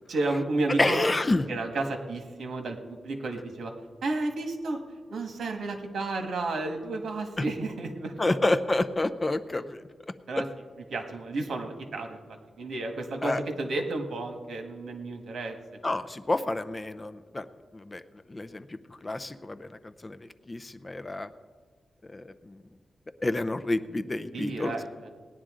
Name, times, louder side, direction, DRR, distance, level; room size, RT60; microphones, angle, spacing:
voice 1, 0.1-1.1 1.5-3.7 4.0-4.8 5.1-8.4 10.3-10.4 10.9-12.2 12.6-15.8 24.3-25.1, right 2 dB, 80° right, 4 dB, 1.6 m, -32 dB
voice 2, 0.7-1.5 7.4-7.5 8.2-9.8 10.3-10.4 13.2-13.4 15.8-17.5 17.7-18.0 18.3-21.3 22.1-22.6 23.2-24.7, left 2 dB, 25° left, 11 dB, 0.5 m, -29 dB
19.0 x 10.0 x 3.7 m, 1.5 s
wide cardioid pair, 120°, 0 cm